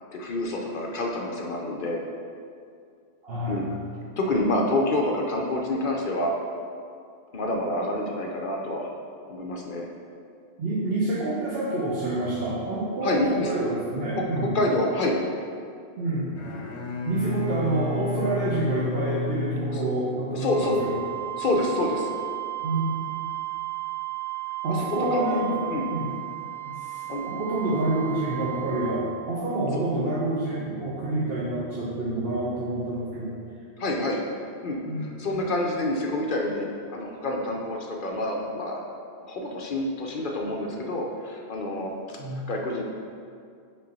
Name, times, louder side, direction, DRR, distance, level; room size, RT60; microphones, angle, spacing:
voice 1, 0.1-2.0 3.5-3.7 4.2-6.3 7.3-8.9 9.3-9.9 13.0-13.5 14.2-15.2 19.7-19.8 20.3-20.9 21.4-22.1 24.7-25.4 25.7-25.9 27.1-27.2 29.7-29.8 33.8-34.2 34.6-38.8 39.2-42.2 42.5-42.8, left 1 dB, 55° left, 0 dB, 0.8 m, -27 dB
voice 2, 3.2-3.6 10.6-14.5 16.0-16.4 17.1-21.0 22.6-23.0 24.6-25.6 25.9-26.2 26.6-33.3 34.9-35.1 42.2-42.4, right 2 dB, 60° right, -7 dB, 1.1 m, -28 dB
Bowed string instrument, 16.3-20.6, left 2 dB, 75° left, 1.0 m, -31 dB
Wind instrument woodwind instrument, 20.5-29.0, right 18 dB, 35° right, 1.1 m, -34 dB
5.4 x 3.9 x 5.3 m, 2.3 s
omnidirectional pair, 1.1 m